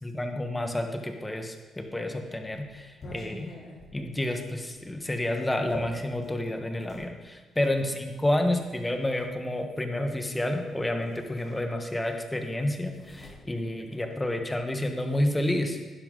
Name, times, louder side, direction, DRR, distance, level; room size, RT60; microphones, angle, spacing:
voice 1, 0.0-3.5 3.9-15.8, left 1 dB, 15° left, 5 dB, 1.3 m, -30 dB
sound 1, 1.7-7.1 8.0-9.3 10.5-10.7 11.0-12.1 12.4-14.6, left 2 dB, 45° left, 3.7 m, -46 dB
11.5 x 10.0 x 3.8 m, 1.3 s
cardioid pair, 90°, 0 cm